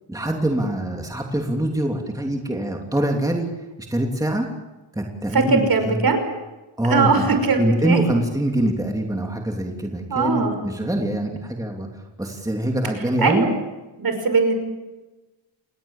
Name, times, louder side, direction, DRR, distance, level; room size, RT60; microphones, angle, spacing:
voice 1, 0.1-3.5 3.9-4.5 4.9-6.0 6.8-11.9 12.2-13.5, right 1 dB, 5° right, 1 dB, 3.1 m, -24 dB
voice 2, 5.3-6.2 6.9-8.0 10.1-10.6 13.2-13.5 14.0-14.5, right 4 dB, 50° right, 7 dB, 5.8 m, -20 dB
28.5 x 21.0 x 7.4 m, 1.1 s
wide cardioid pair, 130°, 47 cm